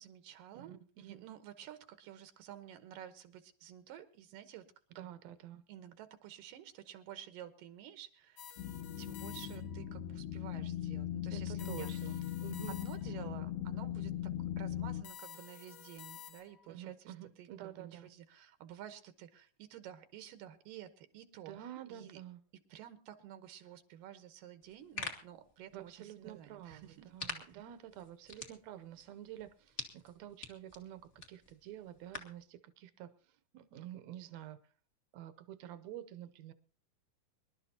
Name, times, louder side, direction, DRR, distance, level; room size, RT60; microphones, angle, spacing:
voice 1, 0.0-4.7 5.0-5.1 5.7-8.7 9.0-12.1 12.7-22.2 22.7-27.1 27.5-27.7, right 11 dB, 90° right, 9 dB, 2.8 m, -52 dB
voice 2, 0.5-1.2 5.0-5.6 11.3-12.8 16.7-18.1 21.5-22.4 25.7-33.1 33.5-34.6 35.1-36.5, right 12 dB, 70° right, 11 dB, 1.8 m, -49 dB
sound 1, 8.4-9.9 11.6-13.3 15.0-16.7, left 9 dB, 65° left, 1.7 m, -52 dB
sound 2, 8.6-15.0, left 11 dB, 85° left, 2.7 m, -39 dB
sound 3, 24.6-32.4, left 2 dB, 30° left, 1.1 m, -48 dB
25.0 x 12.0 x 2.8 m, 0.43 s
omnidirectional pair, 3.8 m